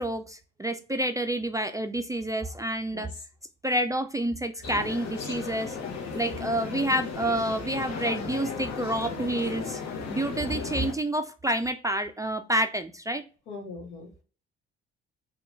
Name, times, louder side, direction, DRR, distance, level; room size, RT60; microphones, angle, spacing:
voice 1, 0.0-3.1 3.6-5.8 6.1-9.8 10.1-13.2, right 1 dB, 10° right, 7 dB, 0.3 m, -28 dB
voice 2, 2.9-3.2 5.8-5.9 6.4-6.6 13.5-14.2, left 3 dB, 80° left, 1 dB, 1.1 m, -42 dB
sound 1, 4.6-10.9, left 5 dB, 60° left, 0.9 m, -35 dB
2.9 x 2.4 x 3.4 m, 0.35 s
hypercardioid pair, 50°, 31 cm